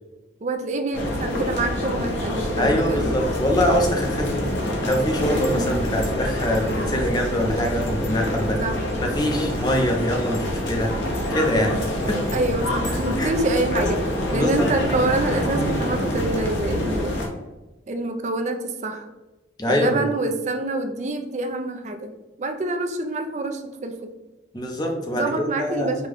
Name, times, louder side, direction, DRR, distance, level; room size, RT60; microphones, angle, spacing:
voice 1, 0.4-3.2 5.5-5.8 8.6-8.7 12.3-14.0 14.3-17.2 17.9-19.1 19.7-22.1 22.4-24.1 25.1-26.1, right 2 dB, 40° right, 5 dB, 0.4 m, -26 dB
sound 1, 0.9-17.3, left 1 dB, 85° left, 0.9 m, -26 dB
voice 2, 2.6-4.4 4.8-8.6 8.9-11.1 11.3-12.2 13.2-13.3 13.7-13.8 14.3-14.7 19.6-20.2 24.5-26.0, equal, 20° left, 2 dB, 0.6 m, -24 dB
5.1 x 2.2 x 3.4 m, 1.1 s
head